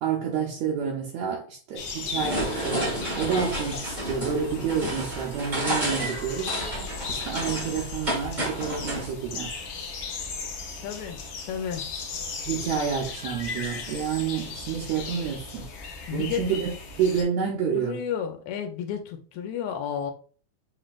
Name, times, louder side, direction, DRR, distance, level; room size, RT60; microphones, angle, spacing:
voice 1, 0.0-6.5 7.1-9.5 12.5-15.7 16.1-18.0, right 7 dB, 75° right, 1.9 m, -29 dB
sound 1, 1.8-17.2, left 4 dB, 90° left, 1.0 m, -37 dB
sound 2, 2.1-9.1, equal, 55° right, 0.4 m, -31 dB
voice 2, 10.8-11.2 11.5-11.8 16.1-16.4 17.7-20.1, left 8 dB, 75° left, 2.0 m, -31 dB
5.9 x 3.3 x 2.4 m
omnidirectional pair, 3.5 m